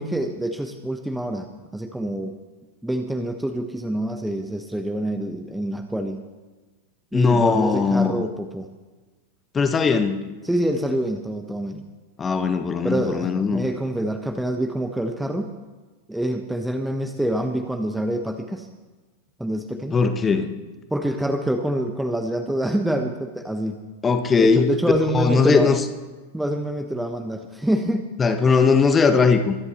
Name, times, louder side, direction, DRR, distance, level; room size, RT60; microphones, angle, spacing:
voice 1, 0.0-2.3 2.8-6.2 7.1-8.7 10.4-11.8 12.8-15.5 16.1-18.7 19.4-20.0 20.9-23.8 24.4-25.7 26.3-28.1, right 1 dB, 5° right, 6 dB, 1.1 m, -26 dB
voice 2, 7.1-8.2 9.5-10.2 12.2-13.6 19.9-20.5 24.0-24.7 25.1-25.8 28.2-29.6, left 5 dB, 20° left, 8 dB, 1.3 m, -19 dB
23.0 x 11.0 x 4.4 m, 1.3 s
figure-of-eight pair, 90°, 0 cm